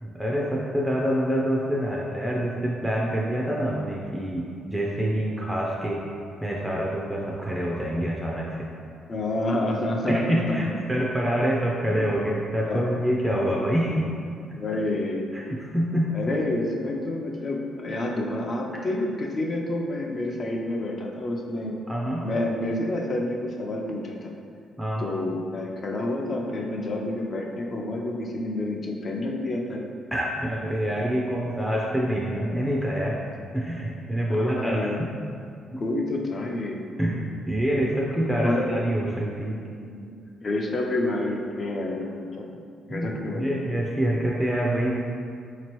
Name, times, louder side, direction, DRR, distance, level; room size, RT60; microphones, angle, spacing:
voice 1, 0.0-6.0 6.4-8.7 10.1-14.1 15.3-16.2 21.9-22.3 24.8-25.0 30.1-33.2 33.5-35.1 37.0-39.6 42.9-44.9, equal, 5° right, -3 dB, 0.4 m, -26 dB
voice 2, 9.1-10.7 11.8-12.2 12.7-13.1 14.5-15.2 16.1-21.8 22.2-24.3 25.0-29.9 34.3-35.1 35.8-36.8 38.4-38.7 39.8-40.1 40.4-42.6 42.9-43.7, left 1 dB, 40° left, 0 dB, 0.5 m, -29 dB
4.2 x 2.9 x 3.0 m, 2.3 s
cardioid pair, 90°, 0 cm